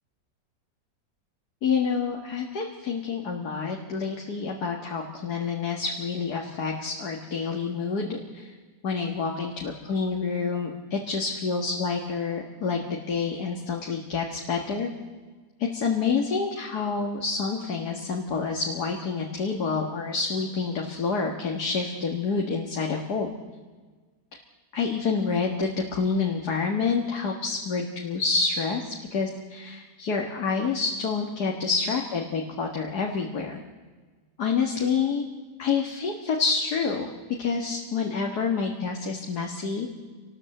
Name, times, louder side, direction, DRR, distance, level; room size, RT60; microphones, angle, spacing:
voice 1, 1.6-8.5 8.8-14.9 15.6-23.3 24.7-33.6 34.4-35.2 35.6-37.1 37.4-39.9, left 5 dB, 65° left, 1 dB, 2.3 m, -28 dB
26.5 x 19.5 x 7.9 m, 1.4 s
omnidirectional pair, 1.9 m